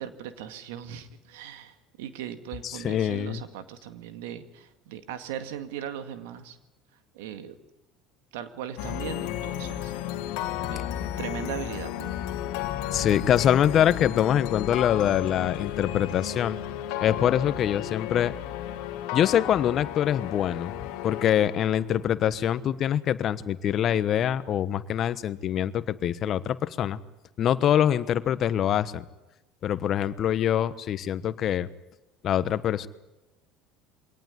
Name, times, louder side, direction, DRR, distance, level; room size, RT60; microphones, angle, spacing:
voice 1, 0.0-6.6 7.1-7.6 8.3-9.9 10.3-10.4 10.6-10.9 11.2-12.1, right 9 dB, 85° right, 9 dB, 2.1 m, -38 dB
voice 2, 2.6-3.4 12.9-16.6 17.0-18.3 19.1-27.0 27.4-29.0 29.6-31.7 32.2-32.9, left 10 dB, 50° left, 14 dB, 1.2 m, -24 dB
sound 1, 8.8-22.0, left 12 dB, 75° left, 2.1 m, -33 dB
23.0 x 18.5 x 9.9 m, 1.0 s
supercardioid pair, 90°, 0 cm